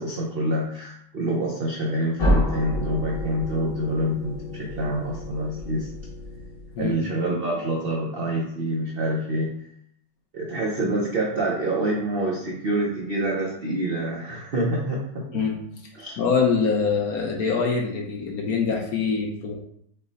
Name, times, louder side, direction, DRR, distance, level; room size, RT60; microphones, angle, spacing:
voice 1, 0.0-5.9 6.8-9.5 10.3-15.4 16.0-16.2, right 1 dB, 75° right, -2 dB, 0.5 m, -26 dB
sound 1, 2.2-6.9, left 1 dB, 40° left, 0.9 m, -29 dB
voice 2, 16.2-19.5, left 5 dB, 65° left, 1 dB, 1.1 m, -24 dB
5.7 x 2.1 x 3.9 m, 0.71 s
omnidirectional pair, 1.9 m